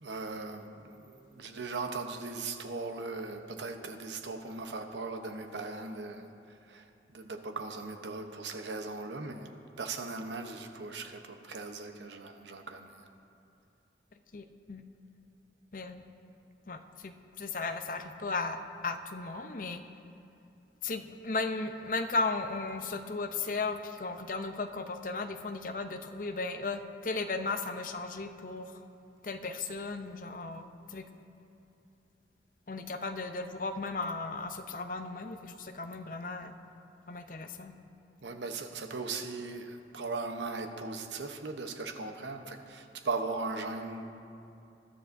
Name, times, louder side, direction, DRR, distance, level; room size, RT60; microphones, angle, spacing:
voice 1, 0.0-6.3 6.7-13.1 38.2-44.1, right 3 dB, 85° right, 5 dB, 0.9 m, -38 dB
voice 2, 14.3-14.8 15.7-16.0 16.7-19.8 20.8-28.7 29.2-31.1 32.7-36.5 37.1-37.7, left 3 dB, 50° left, 7 dB, 0.6 m, -36 dB
20.5 x 12.5 x 2.6 m, 2.7 s
head